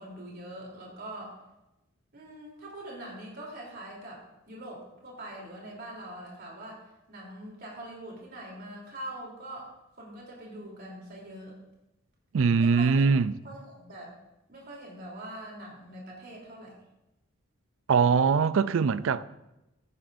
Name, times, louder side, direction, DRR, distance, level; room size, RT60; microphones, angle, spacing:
voice 1, 0.0-1.4 2.1-11.6 12.6-14.1 14.5-16.8, right 1 dB, 50° right, 3.4 m, -43 dB
voice 2, 12.3-13.3 17.9-19.2, right 5 dB, 70° right, 0.4 m, -22 dB
15.5 x 10.0 x 2.6 m
head